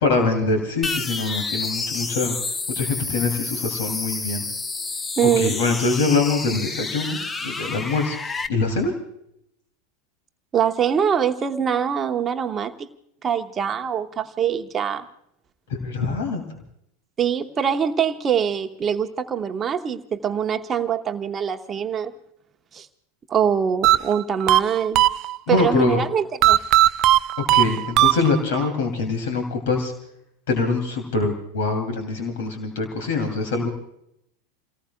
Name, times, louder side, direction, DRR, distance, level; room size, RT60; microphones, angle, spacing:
voice 1, 0.0-2.4 2.7-4.4 5.4-8.2 8.5-8.9 15.7-16.4 25.5-26.0 27.5-29.9 30.5-33.7, left 3 dB, 60° left, 4 dB, 2.7 m, -24 dB
sound 1, 0.8-8.5, left 3 dB, 15° left, 0.9 m, -29 dB
voice 2, 5.2-5.5 10.5-12.9 13.2-15.0 17.2-22.1 22.7-22.9 23.3-25.0 25.5-26.6, right 8 dB, 25° right, 6 dB, 1.0 m, -23 dB
sound 2, 23.8-25.7 26.4-28.7, right 13 dB, 40° right, 0.5 m, -18 dB
29.5 x 19.0 x 2.3 m, 0.76 s
figure-of-eight pair, 85°, 0 cm